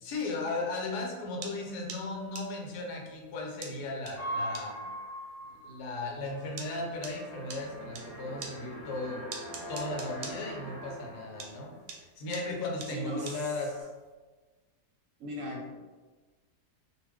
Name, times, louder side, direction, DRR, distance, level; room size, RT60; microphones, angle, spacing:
voice 1, 0.0-4.8 5.5-9.2 9.7-13.7, left 2 dB, 80° left, 0 dB, 1.1 m, -36 dB
sound 1, 1.4-8.1 8.4-11.1 11.4-14.0, right 5 dB, 90° right, 1.2 m, -43 dB
sound 2, 4.1-12.0 12.3-12.8 13.1-13.8, equal, 25° left, 0.7 m, -42 dB
voice 2, 12.9-13.4 15.2-15.8, left 1 dB, 65° right, -3 dB, 0.9 m, -37 dB
2.4 x 2.3 x 3.3 m, 1.3 s
omnidirectional pair, 1.7 m